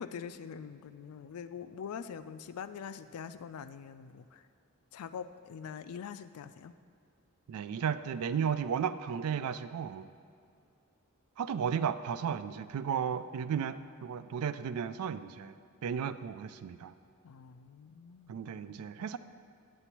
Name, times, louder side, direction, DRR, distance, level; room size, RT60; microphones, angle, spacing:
voice 1, 0.0-4.5 4.9-6.7 17.2-19.2, left 7 dB, 80° left, 12 dB, 0.3 m, -44 dB
voice 2, 7.5-10.1 11.4-15.5 15.8-16.9 18.3-19.2, right 7 dB, 75° right, 12 dB, 0.3 m, -34 dB
9.7 x 7.9 x 3.0 m, 2.5 s
head